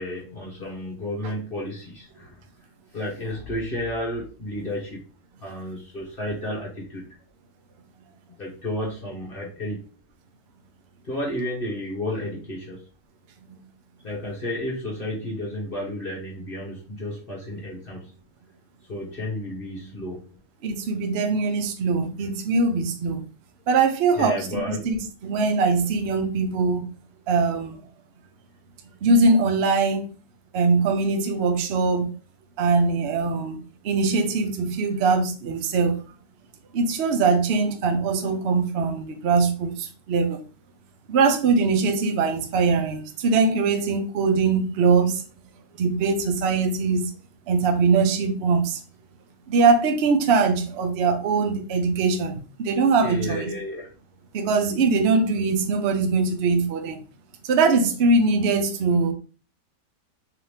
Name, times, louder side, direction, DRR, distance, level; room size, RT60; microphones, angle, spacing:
voice 1, 0.0-2.4 2.9-5.0 5.4-7.2 8.4-9.8 11.0-12.9 14.0-18.1 18.9-20.2 24.2-24.8 53.0-53.9, left 1 dB, 35° left, 1.2 m, -32 dB
voice 2, 20.6-23.2 23.7-26.9 27.3-27.8 29.0-30.1 30.5-32.1 32.6-36.0 36.7-40.4 41.1-45.2 45.8-47.1 47.5-48.8 49.5-53.5 54.3-57.0 57.4-59.1, right 4 dB, 60° right, 0.6 m, -22 dB
4.0 x 2.9 x 3.2 m
omnidirectional pair, 1.8 m